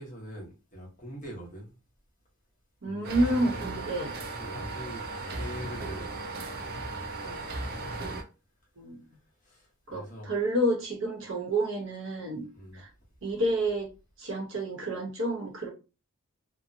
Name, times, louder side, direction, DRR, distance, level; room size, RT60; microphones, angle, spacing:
voice 1, 0.0-1.7 2.8-3.5 4.3-7.8 9.1-10.3 12.5-12.8, equal, 35° left, 1.0 m, -44 dB
voice 2, 2.8-4.1 8.8-9.0 9.9-12.5 12.7-12.9 13.2-13.9 14.2-15.7, right 1 dB, 60° right, 0.8 m, -29 dB
sound 1, 3.0-8.2, right 2 dB, 45° right, 0.4 m, -36 dB
2.7 x 2.0 x 2.6 m
head